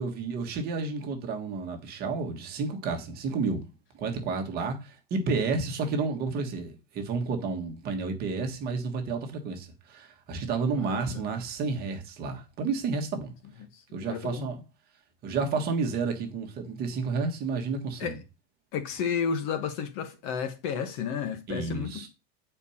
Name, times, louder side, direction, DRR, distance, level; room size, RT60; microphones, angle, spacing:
voice 1, 0.0-3.7 4.0-13.3 13.9-14.6 15.2-18.2 21.5-22.1, right 4 dB, 25° right, 1.6 m, -31 dB
voice 2, 10.7-11.2 13.6-14.5 18.0-18.2 18.7-22.1, left 7 dB, 35° left, 1.4 m, -32 dB
9.4 x 4.5 x 5.7 m
supercardioid pair, 180°, 37 cm